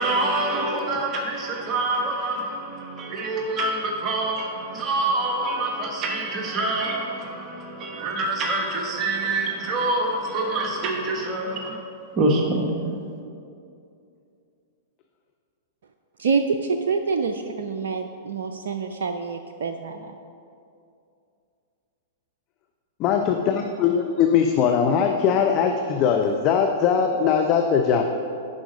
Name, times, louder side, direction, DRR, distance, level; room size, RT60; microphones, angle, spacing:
voice 1, 0.0-11.8 12.1-12.8, right 2 dB, 30° right, 1 dB, 1.2 m, -26 dB
voice 2, 16.2-20.1, right 5 dB, 65° right, 6 dB, 0.4 m, -26 dB
voice 3, 23.0-23.5 23.8-28.0, left 7 dB, 40° left, 3 dB, 0.6 m, -20 dB
10.5 x 5.0 x 5.3 m, 2.5 s
figure-of-eight pair, 105°, 0 cm